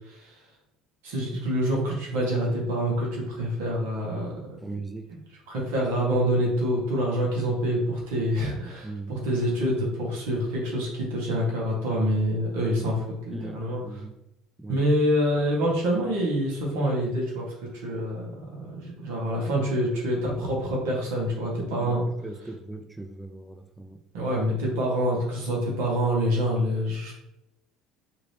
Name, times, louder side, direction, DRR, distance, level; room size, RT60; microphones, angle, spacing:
voice 1, 1.0-4.3 5.1-5.2 5.5-14.0 14.7-22.0 24.1-27.1, equal, 80° right, -3 dB, 1.2 m, -26 dB
voice 2, 4.6-5.1 8.8-9.2 13.3-14.2 14.6-14.9 21.8-24.0, right 3 dB, 10° right, 6 dB, 0.3 m, -39 dB
2.9 x 2.5 x 3.2 m, 0.85 s
supercardioid pair, 85°, 0 cm